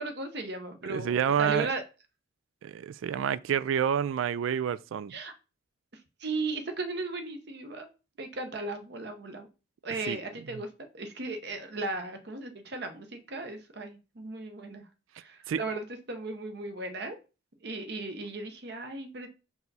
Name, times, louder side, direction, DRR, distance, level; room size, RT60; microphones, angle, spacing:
voice 1, 0.0-1.8 5.1-5.3 6.2-7.9 8.2-9.5 9.8-14.8 15.2-17.2 17.6-19.3, right 3 dB, 55° right, 0.8 m, -36 dB
voice 2, 0.9-1.7 2.6-5.1 10.1-10.2 15.5-15.6, right 8 dB, 80° right, 0.3 m, -28 dB
5.4 x 4.7 x 4.0 m
head